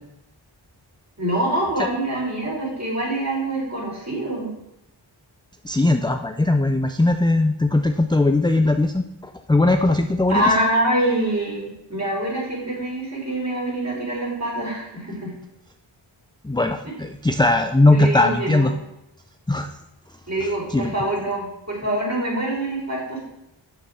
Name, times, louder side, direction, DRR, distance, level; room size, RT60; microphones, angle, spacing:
voice 1, 1.2-4.5 10.3-15.3 17.8-18.7 20.3-23.2, right 1 dB, 35° right, -3 dB, 4.2 m, -25 dB
voice 2, 5.6-10.4 16.4-18.7 19.5-19.7 20.7-20.9, left 2 dB, 10° left, 6 dB, 0.5 m, -19 dB
7.2 x 7.0 x 6.3 m, 0.86 s
wide cardioid pair, 65°, 48 cm